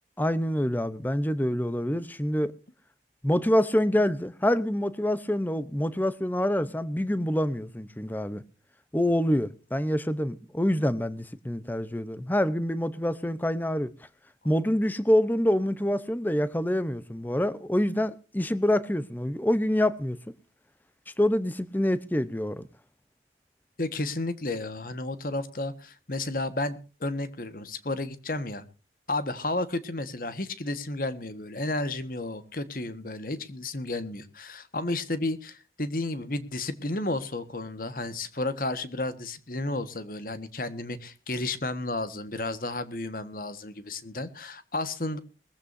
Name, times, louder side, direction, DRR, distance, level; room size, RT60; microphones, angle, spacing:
voice 1, 0.2-2.5 3.2-8.4 8.9-13.9 14.4-20.2 21.2-22.7, left 1 dB, 10° left, 0.8 m, -26 dB
voice 2, 23.8-28.6 29.1-45.2, left 2 dB, 50° left, 1.5 m, -32 dB
21.0 x 15.0 x 2.7 m
head